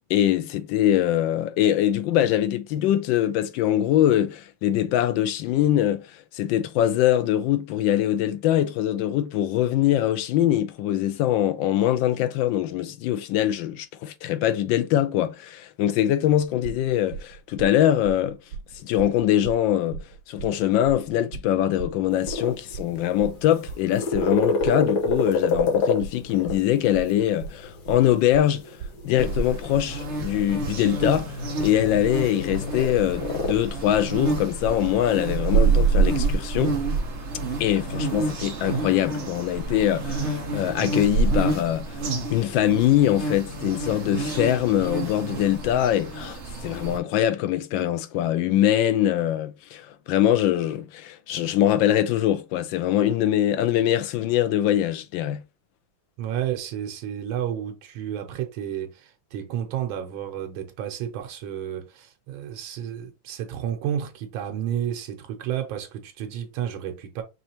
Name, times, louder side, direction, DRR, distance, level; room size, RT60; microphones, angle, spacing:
voice 1, 0.1-18.4 18.8-28.7 29.0-36.8 37.6-42.0 42.3-55.4, left 11 dB, 80° left, 1.3 m, -23 dB
sound 1, 16.6-35.9, right 6 dB, 70° right, 1.1 m, -38 dB
sound 2, 22.1-33.6, left 3 dB, 60° left, 1.7 m, -30 dB
sound 3, 29.2-47.0, right 4 dB, 45° right, 0.9 m, -27 dB
voice 2, 56.2-67.2, right 10 dB, 85° right, 1.6 m, -31 dB
5.4 x 3.0 x 2.9 m
omnidirectional pair, 2.1 m